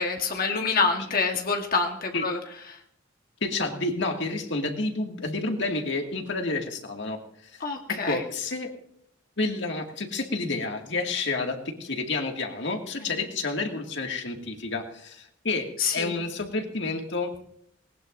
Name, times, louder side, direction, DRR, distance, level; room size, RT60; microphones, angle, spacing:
voice 1, 0.0-2.4 2.7-2.8 7.6-8.2 13.0-13.3 15.8-16.2, left 4 dB, 50° left, 3 dB, 1.4 m, -27 dB
voice 2, 3.4-7.2 7.5-7.6 8.1-8.7 9.4-17.3, left 3 dB, 65° left, 3 dB, 2.1 m, -30 dB
20.0 x 19.0 x 2.6 m, 0.68 s
head